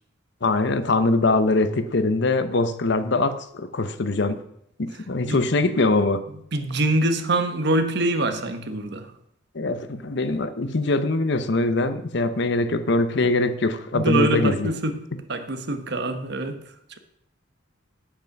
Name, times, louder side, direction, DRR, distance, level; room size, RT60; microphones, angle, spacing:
voice 1, 0.4-4.4 4.8-6.2 9.5-14.7, left 2 dB, 65° left, 0.8 m, -22 dB
voice 2, 6.5-9.1 13.2-13.3 13.9-16.6, right 1 dB, 60° right, 1.2 m, -25 dB
9.5 x 8.7 x 5.9 m
head